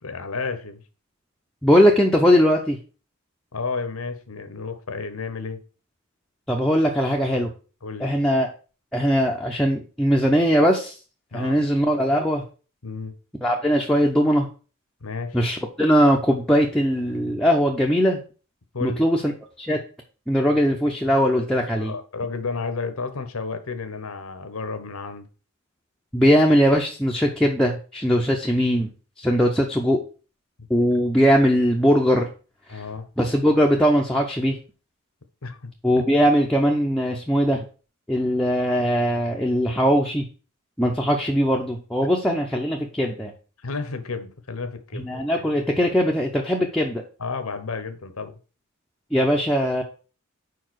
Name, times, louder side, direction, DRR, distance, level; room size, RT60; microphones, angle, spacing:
voice 1, 0.0-0.8 3.5-5.6 7.8-8.1 11.3-11.7 12.8-13.1 15.0-15.4 18.7-19.0 21.8-25.3 32.7-33.1 35.4-35.7 36.0-36.1 43.6-45.4 47.2-48.3, left 4 dB, 80° left, 9 dB, 1.0 m, -32 dB
voice 2, 1.6-2.8 6.5-7.5 8.0-8.5 8.9-11.0 11.3-12.4 13.4-14.5 15.3-18.2 18.8-19.3 19.6-19.8 20.3-21.9 26.1-28.9 29.2-30.0 30.7-32.3 32.7-32.8 33.2-34.6 35.8-37.6 38.1-40.3 40.8-43.3 44.9-47.0 49.1-49.8, equal, 5° left, -1 dB, 0.7 m, -20 dB
4.9 x 4.7 x 6.1 m, 0.36 s
head